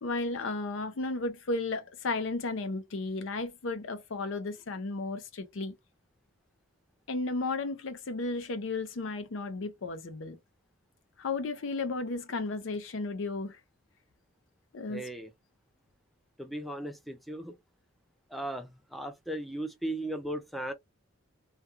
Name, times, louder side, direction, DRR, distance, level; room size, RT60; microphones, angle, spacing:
voice 1, 0.0-5.7 7.1-10.4 11.2-13.6 14.7-15.0, left 3 dB, 75° left, 0.5 m, -34 dB
voice 2, 14.9-15.3 16.4-17.5 18.3-20.7, right 1 dB, ahead, 0.4 m, -37 dB
2.3 x 2.3 x 2.8 m
head